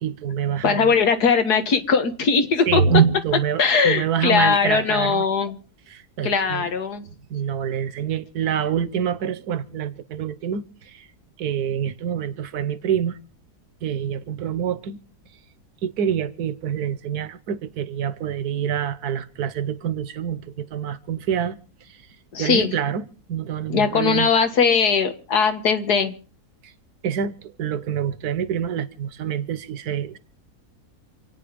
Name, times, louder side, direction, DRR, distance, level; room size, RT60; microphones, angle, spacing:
voice 1, 0.0-1.0 2.7-5.2 5.9-6.7 7.3-11.1 11.4-13.2 13.8-15.0 15.8-21.6 21.9-22.0 22.4-24.3 26.6-26.7 27.0-30.2, right 8 dB, 75° right, 1.5 m, -26 dB
voice 2, 0.6-2.8 3.6-5.6 6.2-7.1 22.3-22.7 23.7-26.2, left 5 dB, 75° left, 2.1 m, -20 dB
27.0 x 9.4 x 5.2 m
omnidirectional pair, 1.7 m